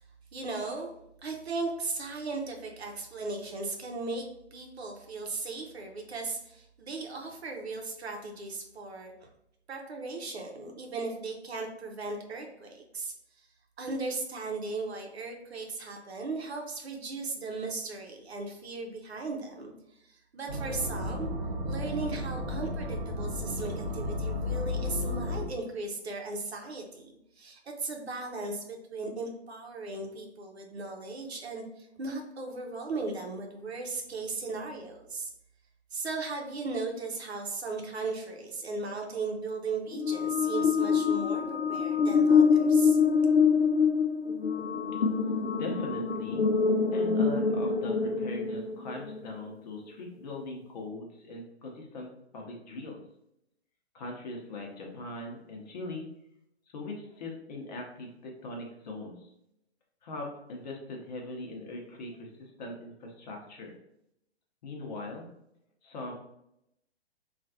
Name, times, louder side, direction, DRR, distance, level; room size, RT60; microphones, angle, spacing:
voice 1, 0.3-0.9 1.2-4.3 4.5-9.3 9.7-13.1 13.8-19.7 20.0-21.3 21.6-35.3 35.9-43.0, right 3 dB, 70° right, 2 dB, 0.8 m, -37 dB
sound 1, 20.5-25.5, left 1 dB, 30° right, 0.8 m, -33 dB
sound 2, 39.9-49.3, left 5 dB, 75° left, 0.6 m, -25 dB
voice 2, 45.6-46.5 46.9-53.0 53.9-56.1 56.7-59.3 60.0-63.8 64.6-65.3 65.8-66.1, left 2 dB, 40° left, 0 dB, 0.8 m, -40 dB
3.9 x 2.4 x 2.6 m, 0.80 s
figure-of-eight pair, 120°, 33 cm